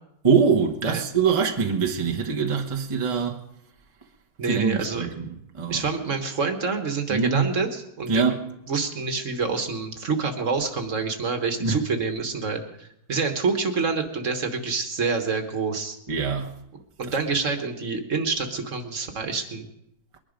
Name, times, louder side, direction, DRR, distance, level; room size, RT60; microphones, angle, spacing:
voice 1, 0.2-3.4 4.4-5.8 7.1-7.5 8.1-8.4 11.6-11.8 16.1-16.5, right 6 dB, 25° right, 0.8 m, -23 dB
voice 2, 4.4-5.1 5.7-8.2 8.7-16.0 17.0-19.7, right 4 dB, 45° right, 1.6 m, -27 dB
21.5 x 11.0 x 5.1 m
omnidirectional pair, 2.0 m